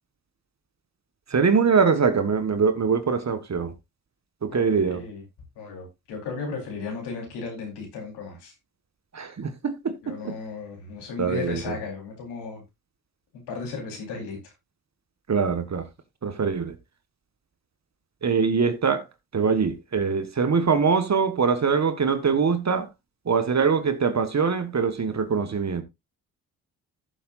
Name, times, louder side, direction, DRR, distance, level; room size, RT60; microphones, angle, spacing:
voice 1, 1.3-3.7 4.4-5.0 9.1-10.3 11.2-11.7 15.3-15.8 16.2-16.7 18.2-19.0 19.3-22.9 23.3-25.8, right 5 dB, 45° right, 1.5 m, -23 dB
voice 2, 4.5-5.2 5.6-8.5 10.0-12.6 13.5-14.4, left 4 dB, 85° left, 4.1 m, -35 dB
14.0 x 7.2 x 2.5 m
supercardioid pair, 45°, 39 cm